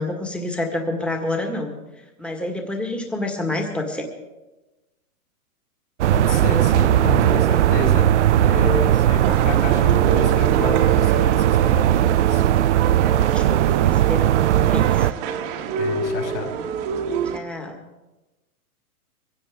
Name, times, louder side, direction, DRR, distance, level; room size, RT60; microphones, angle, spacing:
voice 1, 0.0-1.7 2.2-4.1 13.0-15.1 17.3-17.8, left 2 dB, ahead, 2 dB, 1.7 m, -28 dB
sound 1, 6.0-15.1, right 12 dB, 50° right, 0.5 m, -18 dB
voice 2, 6.1-8.1 8.4-12.4 15.8-16.5, left 5 dB, 50° left, 1 dB, 5.4 m, -29 dB
sound 2, 9.2-17.4, right 6 dB, 35° right, 1.5 m, -29 dB
23.0 x 16.5 x 3.7 m, 1.1 s
hypercardioid pair, 140°, 46 cm